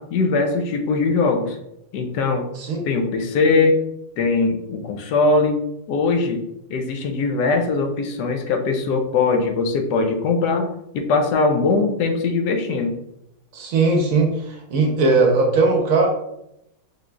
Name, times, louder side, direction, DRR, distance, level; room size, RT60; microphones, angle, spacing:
voice 1, 0.0-1.6 1.9-2.5 2.8-3.8 4.2-5.6 5.9-12.9, left 3 dB, 75° left, 5 dB, 1.1 m, -21 dB
voice 2, 13.5-16.1, right 3 dB, 65° right, 1 dB, 0.9 m, -18 dB
3.9 x 3.2 x 2.3 m, 0.81 s
omnidirectional pair, 1.9 m